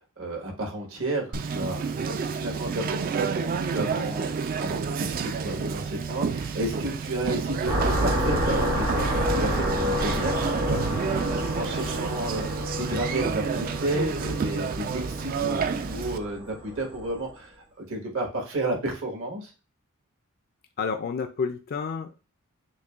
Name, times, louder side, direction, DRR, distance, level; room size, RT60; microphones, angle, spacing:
voice 1, 0.2-12.4 12.8-19.5, right 1 dB, 70° right, 0 dB, 1.4 m, -32 dB
Conversation, 1.3-16.2, right 5 dB, 45° right, 0.3 m, -30 dB
sound 1, 7.7-17.2, equal, 85° right, 2.1 m, -29 dB
voice 2, 20.8-22.2, left 5 dB, 45° left, 6 dB, 0.3 m, -30 dB
6.3 x 2.1 x 2.4 m, 0.33 s
head